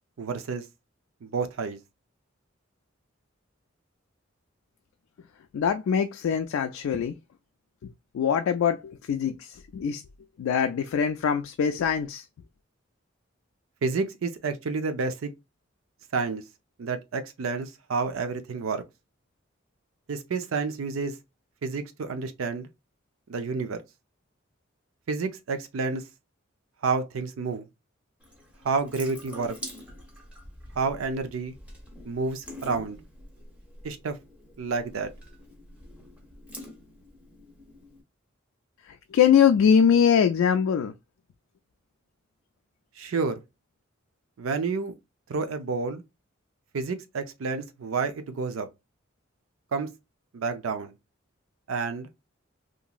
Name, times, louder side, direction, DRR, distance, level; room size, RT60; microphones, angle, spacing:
voice 1, 0.2-0.6 1.2-1.8 13.8-15.3 16.1-16.4 16.8-18.8 20.1-21.1 21.6-22.7 23.3-23.8 25.1-26.0 26.8-27.7 28.6-29.6 30.8-31.5 32.0-33.0 33.8-34.2 34.6-35.1 43.0-43.4 44.4-44.9 45.3-46.0 46.7-48.7 49.7-49.9 50.3-50.9 51.7-52.1, right 4 dB, 85° right, 0.5 m, -29 dB
voice 2, 5.5-7.2 8.1-10.0 10.4-12.2 38.9-40.9, left 7 dB, 85° left, 0.3 m, -23 dB
Water tap faucet / Sink (filling or washing) / Drip, 28.2-38.0, left 1 dB, 5° right, 0.7 m, -46 dB
2.9 x 2.5 x 2.3 m
head